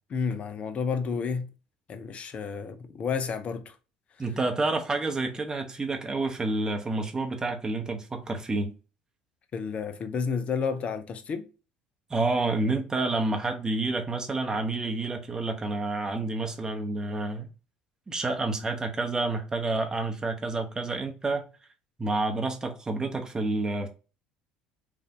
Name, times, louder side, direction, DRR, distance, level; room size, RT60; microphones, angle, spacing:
voice 1, 0.1-1.5 1.9-3.8 9.5-11.5, left 6 dB, 40° left, 0.6 m, -31 dB
voice 2, 4.2-8.7 12.1-17.5 18.1-21.5 22.0-23.9, right 2 dB, 20° right, 0.9 m, -29 dB
4.7 x 2.6 x 2.6 m
figure-of-eight pair, 60°, 3 cm